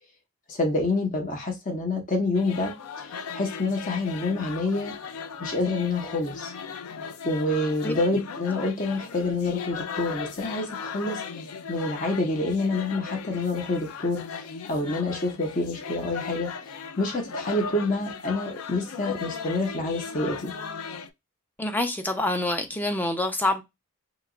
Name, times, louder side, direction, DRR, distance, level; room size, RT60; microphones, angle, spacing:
voice 1, 0.5-4.9 5.4-6.5 7.2-11.4 11.7-16.5 17.0-20.5, left 2 dB, 35° left, 0.7 m, -27 dB
sound 1, 2.3-21.1, left 6 dB, 90° left, 0.4 m, -37 dB
voice 2, 21.6-23.6, left 2 dB, 10° left, 0.4 m, -26 dB
2.9 x 2.2 x 3.6 m
head